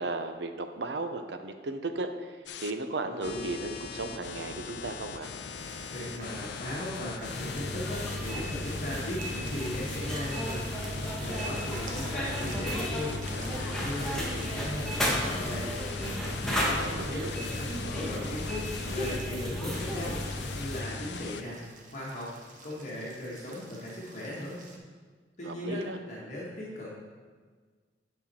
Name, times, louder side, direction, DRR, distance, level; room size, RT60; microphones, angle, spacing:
voice 1, 0.0-2.3 2.6-5.3 16.8-17.3 25.4-26.0, right 2 dB, 75° right, 7 dB, 0.7 m, -35 dB
sound 1, 2.5-2.7 3.2-19.2 19.7-21.4, left 6 dB, 70° left, 0.5 m, -41 dB
sound 2, 5.5-24.8, right 2 dB, 50° right, 1.1 m, -50 dB
voice 2, 5.9-15.7 16.5-18.6 18.9-21.6 21.9-22.3 22.6-24.6 25.4-26.9, left 1 dB, 45° left, -6 dB, 1.5 m, -38 dB
sound 3, 7.2-20.8, equal, 5° left, 1.5 m, -33 dB
9.8 x 5.8 x 4.3 m, 1.5 s
head